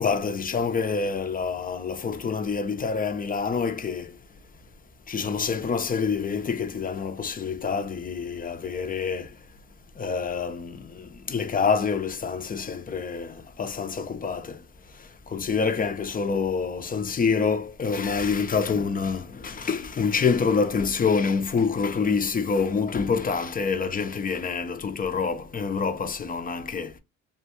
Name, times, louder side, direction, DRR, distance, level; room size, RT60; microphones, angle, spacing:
voice 1, 0.0-4.1 5.1-9.3 10.0-14.6 15.3-26.9, left 5 dB, 30° left, 0.5 m, -27 dB
2.8 x 2.2 x 2.9 m
cardioid pair, 90°, 30 cm